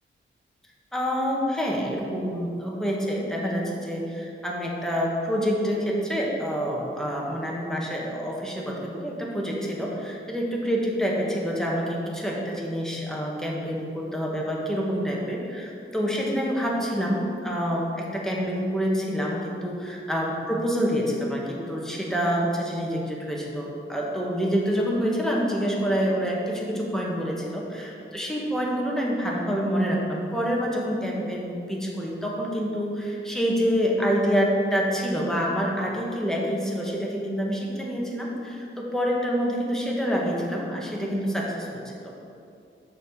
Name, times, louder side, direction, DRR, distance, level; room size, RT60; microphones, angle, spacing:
voice 1, 0.9-42.1, equal, ahead, -3 dB, 1.5 m, -27 dB
6.4 x 4.8 x 6.6 m, 2.5 s
wide cardioid pair, 80°, 21 cm